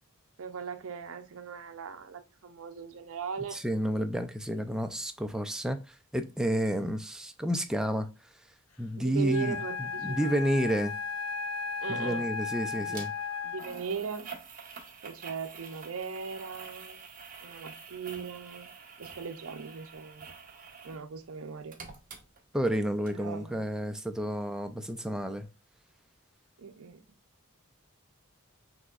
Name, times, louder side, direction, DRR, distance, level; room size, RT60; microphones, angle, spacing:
voice 1, 0.4-3.6 9.0-10.4 11.8-12.2 12.7-13.0 13.4-14.3 15.0-17.0 17.4-18.7 19.0-20.3 20.8-21.8 23.1-23.7 26.6-27.1, right 5 dB, 65° right, 0.6 m, -39 dB
voice 2, 3.5-8.1 8.8-9.6 10.0-11.0 11.9-13.1 22.5-25.5, equal, 5° right, 0.4 m, -30 dB
Wind instrument woodwind instrument, 9.3-13.9, left 5 dB, 70° left, 0.7 m, -35 dB
sound 1, 12.9-13.1 13.6-21.0 21.3-22.8 23.1-23.2, right 5 dB, 40° right, 0.9 m, -47 dB
6.1 x 3.0 x 2.4 m
head